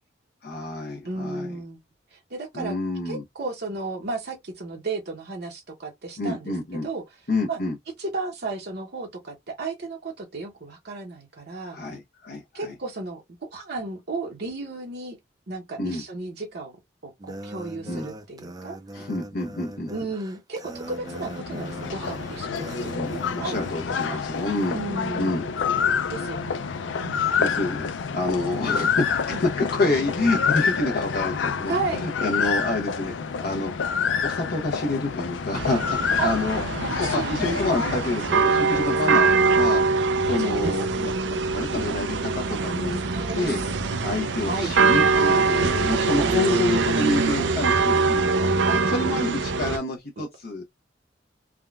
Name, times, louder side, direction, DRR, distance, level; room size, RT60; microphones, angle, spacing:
voice 1, 0.4-1.6 2.5-3.2 6.2-6.9 7.3-7.8 11.7-12.7 15.8-16.0 17.9-18.1 18.9-19.9 22.8-24.8 25.2-25.4 27.4-27.9 28.1-29.5 29.8-33.7 34.2-36.6 37.0-39.8 40.2-43.0 43.3-43.6 44.0-48.2 48.8-50.6, left 2 dB, 60° left, 0.7 m, -28 dB
voice 2, 1.0-1.8 2.1-2.8 3.0-7.0 7.5-7.6 8.0-11.8 12.5-15.2 15.5-16.8 17.0-18.8 19.9-23.6 23.9-24.2 24.7-25.4 26.1-26.6 27.0-27.2 29.3-29.4 31.7-32.0 36.1-36.3 36.8-37.6 39.1-39.2 40.2-40.8 42.9-43.7 44.5-44.7 46.0-47.0 48.6-48.8 50.2-50.3, right 3 dB, 60° right, 0.9 m, -34 dB
sound 1, 17.2-24.2, right 1 dB, 20° right, 0.4 m, -40 dB
sound 2, 20.7-39.1, left 6 dB, 90° left, 0.4 m, -28 dB
sound 3, 35.5-49.8, right 4 dB, 80° right, 0.5 m, -23 dB
3.5 x 2.2 x 2.3 m
head